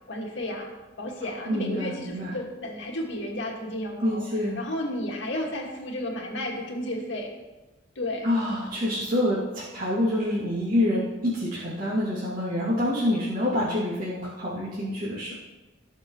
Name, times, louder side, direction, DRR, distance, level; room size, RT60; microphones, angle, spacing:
voice 1, 0.1-0.7 1.0-4.2 4.6-7.3 8.0-8.3, left 1 dB, 65° left, -1 dB, 2.2 m, -32 dB
voice 2, 1.5-2.3 4.0-4.6 8.2-15.3, left 1 dB, 45° right, -10 dB, 2.9 m, -27 dB
18.5 x 6.5 x 3.2 m, 1.1 s
head